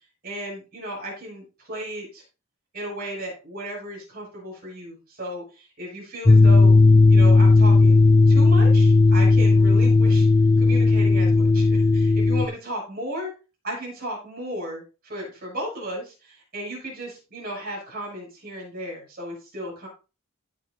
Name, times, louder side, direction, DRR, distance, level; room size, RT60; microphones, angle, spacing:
voice 1, 0.2-2.2 2.7-6.8 7.1-10.3 10.6-13.3 13.6-19.9, right 1 dB, 45° right, -3 dB, 6.5 m, -35 dB
sound 1, 6.3-12.5, left 3 dB, 20° left, 0.5 m, -15 dB
16.0 x 7.2 x 2.6 m, 0.32 s
head